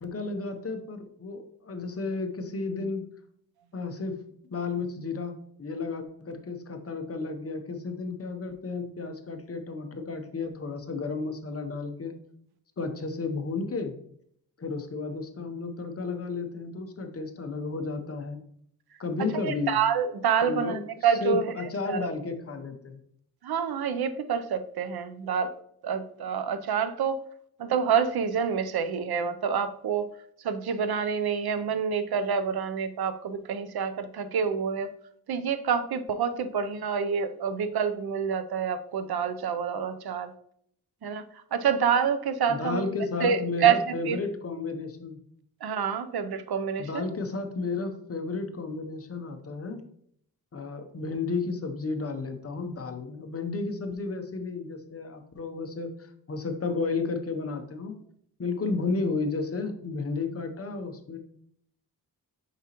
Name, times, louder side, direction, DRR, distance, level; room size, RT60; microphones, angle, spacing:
voice 1, 0.0-3.0 3.7-4.2 4.5-12.1 12.8-14.0 14.6-18.4 19.0-19.8 20.4-20.8 21.2-23.0 42.5-45.2 46.8-49.8 50.5-55.9 56.3-58.0 58.4-61.2, left 4 dB, 40° left, 6 dB, 0.7 m, -32 dB
voice 2, 19.3-21.5 21.8-22.0 23.4-25.5 25.8-27.2 27.6-30.1 30.4-34.9 35.3-40.3 41.0-41.2 41.5-42.8 43.2-44.2 45.6-47.1, right 7 dB, 75° right, 11 dB, 0.6 m, -27 dB
6.7 x 4.9 x 2.9 m, 0.68 s
wide cardioid pair, 170°, 37 cm